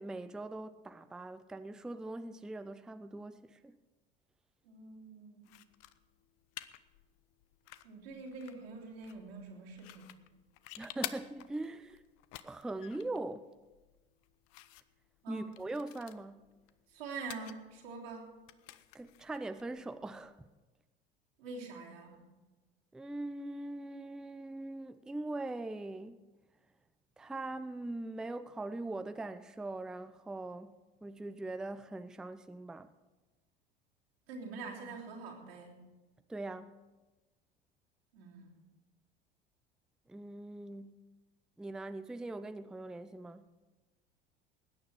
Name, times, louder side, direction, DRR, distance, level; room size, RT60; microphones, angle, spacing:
voice 1, 0.0-3.7 10.8-12.0 12.4-13.5 15.3-16.4 18.9-20.4 22.9-26.2 27.2-30.7 31.0-32.9 36.3-36.7 40.1-41.0 41.6-43.4, right 2 dB, ahead, 0.4 m, -41 dB
voice 2, 4.6-5.5 7.8-10.1 15.2-15.6 16.9-18.4 21.4-22.2 34.3-35.8 38.1-38.6, right 4 dB, 70° right, 3.3 m, -45 dB
sound 1, 5.4-20.6, left 15 dB, 50° left, 0.7 m, -51 dB
20.0 x 9.5 x 4.7 m
figure-of-eight pair, 75°, 31 cm